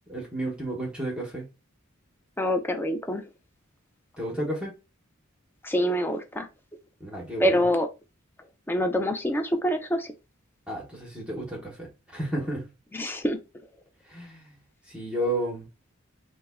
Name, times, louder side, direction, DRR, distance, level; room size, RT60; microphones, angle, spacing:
voice 1, 0.1-1.4 4.2-4.7 7.0-7.7 10.7-12.7 14.1-14.6 14.9-15.7, right 1 dB, 5° right, 0.9 m, -32 dB
voice 2, 2.4-3.2 5.6-6.5 7.4-7.9 8.7-10.1 12.9-13.4, equal, 10° left, 0.4 m, -25 dB
3.4 x 2.1 x 3.4 m
head